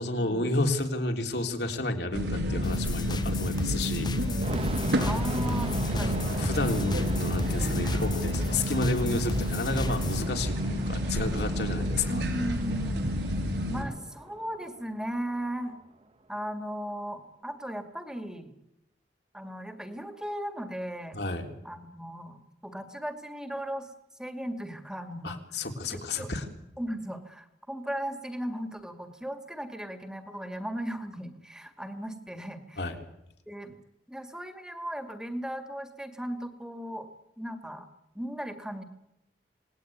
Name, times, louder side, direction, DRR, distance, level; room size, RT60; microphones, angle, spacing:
voice 1, 0.0-4.1 6.4-12.2 21.1-21.5 25.2-26.4 32.8-33.0, left 2 dB, 70° left, 4 dB, 3.6 m, -31 dB
sound 1, 2.1-13.8, equal, 80° right, 5.7 m, -30 dB
sound 2, 2.6-10.2, left 2 dB, 25° left, 0.9 m, -36 dB
sound 3, 4.4-15.3, right 1 dB, 35° right, 1.3 m, -39 dB
voice 2, 5.0-6.3 12.1-13.0 13.7-15.7 16.3-18.5 19.3-21.2 21.6-23.9 24.2-25.7 25.9-26.3 26.8-32.9 33.5-33.8 34.1-37.1 37.4-37.9 38.1-38.8, equal, 5° right, 8 dB, 2.2 m, -37 dB
27.5 x 19.5 x 9.4 m, 0.85 s
head